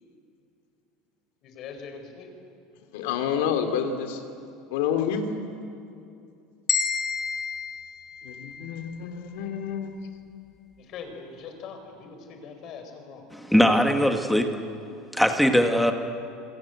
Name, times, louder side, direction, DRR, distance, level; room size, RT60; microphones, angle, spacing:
voice 1, 1.4-2.3 10.9-13.2, left 5 dB, 40° left, 5 dB, 4.6 m, -41 dB
voice 2, 2.9-4.2 4.7-5.3 8.2-10.0, left 8 dB, 80° left, 6 dB, 3.2 m, -28 dB
sound 1, 6.7-8.9, left 6 dB, 20° left, 2.9 m, -30 dB
voice 3, 13.3-14.5 15.1-15.9, equal, ahead, 5 dB, 1.6 m, -20 dB
26.5 x 26.0 x 8.0 m, 2.5 s
cardioid pair, 165°, 0 cm